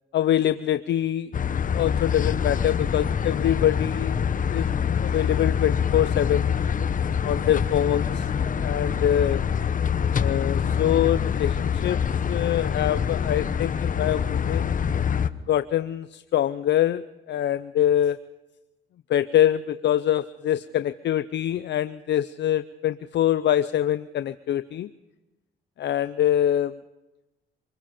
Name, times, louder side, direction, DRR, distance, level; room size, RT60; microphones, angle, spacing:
voice 1, 0.1-1.3 1.7-4.2 4.5-4.7 5.0-6.5 7.2-8.3 8.6-9.4 10.2-12.0 12.3-14.9 15.5-17.0 17.3-18.2 19.1-24.9 25.8-26.7, left 11 dB, 60° left, 13 dB, 0.6 m, -24 dB
sound 1, 1.3-15.3, left 7 dB, 40° left, 1.0 m, -25 dB
26.0 x 20.5 x 5.1 m, 1.0 s
cardioid pair, 90°, 20 cm